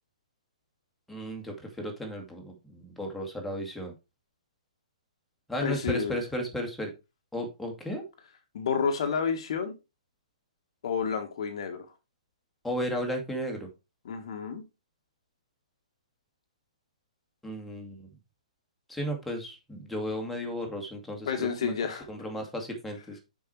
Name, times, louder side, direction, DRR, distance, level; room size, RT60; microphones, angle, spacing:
voice 1, 1.1-3.9 5.5-6.9 7.3-8.0 12.6-13.7 17.4-18.1 18.9-23.2, equal, ahead, 1 dB, 2.2 m, -34 dB
voice 2, 5.6-6.2 8.5-9.7 10.8-11.8 14.0-14.6 21.2-22.1, left 6 dB, 50° left, 7 dB, 1.5 m, -30 dB
6.9 x 6.3 x 4.4 m, 0.26 s
figure-of-eight pair, 125°, 4 cm